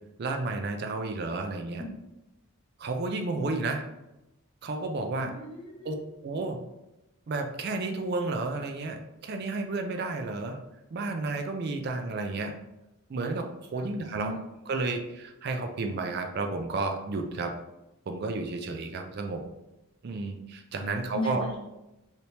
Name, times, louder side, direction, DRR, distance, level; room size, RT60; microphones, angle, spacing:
voice 1, 0.2-1.8 2.8-3.8 4.6-5.3 5.8-6.0 6.2-6.6 7.3-10.6 10.9-12.5 13.1-14.3 14.7-17.5 18.1-19.4 20.0-21.4, right 3 dB, 50° right, 4 dB, 0.3 m, -32 dB
voice 2, 1.5-1.9 5.2-5.9 13.7-14.4 20.8-21.6, left 1 dB, 25° left, -4 dB, 0.8 m, -37 dB
3.3 x 2.8 x 2.8 m, 0.94 s
head